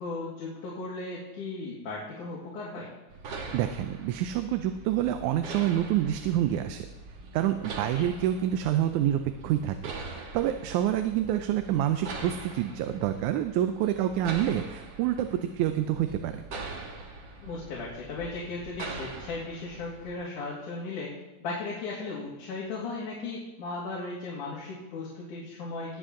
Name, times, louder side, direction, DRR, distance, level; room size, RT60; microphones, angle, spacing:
voice 1, 0.0-2.9 8.0-8.1 17.4-21.1 21.4-26.0, left 3 dB, 85° left, -5 dB, 3.6 m, -36 dB
sound 1, 3.1-20.1, right 3 dB, 50° right, 1.6 m, -42 dB
voice 2, 3.5-6.9 7.3-9.8 10.1-16.3, right 11 dB, 85° right, 8 dB, 2.0 m, -27 dB
20.0 x 7.7 x 3.8 m, 1.1 s
omnidirectional pair, 3.4 m